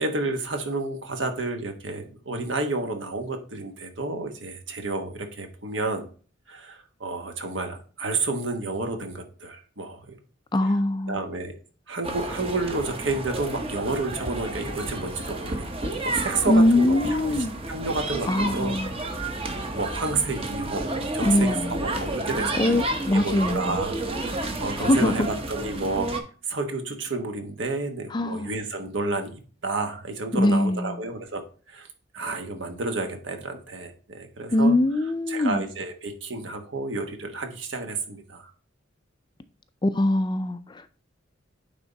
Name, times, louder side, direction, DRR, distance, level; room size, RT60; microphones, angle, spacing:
voice 1, 0.0-6.1 6.5-10.2 10.6-10.8 11.1-11.5 11.9-18.8 19.4-22.8 23.1-26.1 26.5-29.3 29.6-31.4 31.7-31.9 32.1-38.5, right 3 dB, 65° right, 1.2 m, -31 dB
voice 2, 10.5-11.3 16.5-17.5 18.3-19.0 21.2-21.8 22.6-23.8 24.8-25.3 28.1-28.5 30.3-31.0 34.5-35.6 39.8-40.9, left 1 dB, 25° left, 0.4 m, -22 dB
sound 1, 12.0-26.2, right 2 dB, 30° right, 0.9 m, -31 dB
9.2 x 3.6 x 4.0 m
head